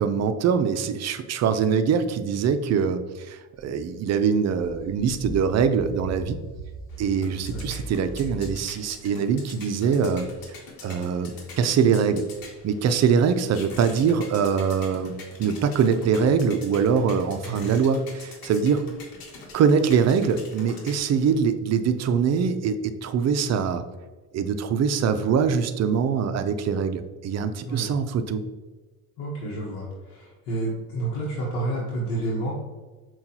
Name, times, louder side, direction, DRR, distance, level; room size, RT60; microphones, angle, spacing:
voice 1, 0.0-6.4 7.0-10.3 10.8-12.2 12.6-18.8 19.5-23.8 24.3-28.4, right 6 dB, 40° right, 10 dB, 0.4 m, -23 dB
sound 1, 3.6-3.7 4.2-9.0 10.0-10.4 12.6-12.7 19.9-20.0 20.5-20.6 21.0-21.1, right 1 dB, 30° left, 1.0 m, -39 dB
sound 2, 6.9-21.4, left 3 dB, 60° left, 1.1 m, -45 dB
voice 2, 29.2-32.7, right 2 dB, 80° left, -6 dB, 1.0 m, -30 dB
5.7 x 2.4 x 2.8 m, 1.3 s
hypercardioid pair, 65°, 41 cm